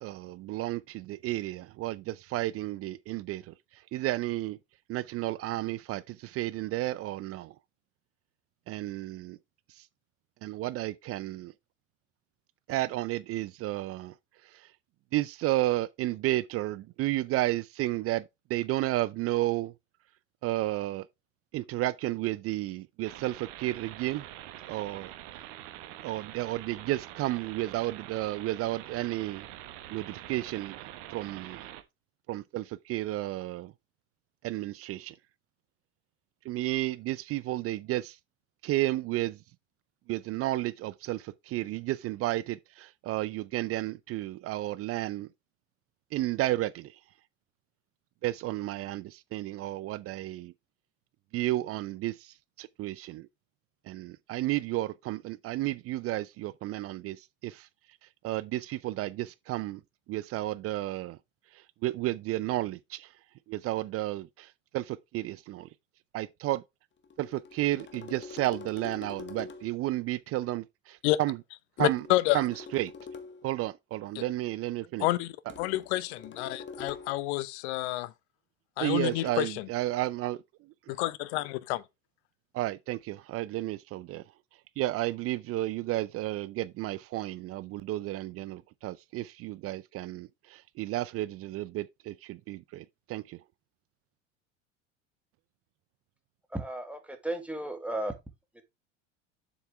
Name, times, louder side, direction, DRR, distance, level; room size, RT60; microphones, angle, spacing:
voice 1, 0.0-4.6 4.9-7.5 8.7-9.4 9.7-9.9 10.4-11.5 12.7-14.1 14.4-14.7 15.1-19.7 20.4-21.1 21.5-24.3 24.7-25.1 26.0-29.5 29.9-30.8 31.1-31.6 32.3-33.7 34.4-35.2 36.4-38.2 38.6-39.4 40.1-45.3 46.1-47.0 48.2-50.5 51.3-53.3 53.8-57.7 58.2-59.8 60.1-61.2 61.5-63.1 63.5-65.7 66.1-66.6 67.2-71.4 71.8-72.1 72.3-72.9 73.4-75.1 78.8-80.4 80.9-81.0 82.5-84.2 84.8-93.4, right 16 dB, 40° right, 0.5 m, -32 dB
sound 1, 23.0-31.8, right 13 dB, 60° right, 1.4 m, -45 dB
sound 2, 67.0-69.8 71.8-73.5 75.5-77.3 79.0-79.3, left 5 dB, 30° left, 1.6 m, -45 dB
voice 2, 71.8-72.4 75.0-78.1 78.8-79.7 80.9-81.8, left 17 dB, 60° left, 0.8 m, -29 dB
voice 3, 96.5-98.1 98.6-98.7, right 1 dB, 5° right, 1.9 m, -34 dB
7.3 x 6.9 x 3.4 m
hypercardioid pair, 75°, 38 cm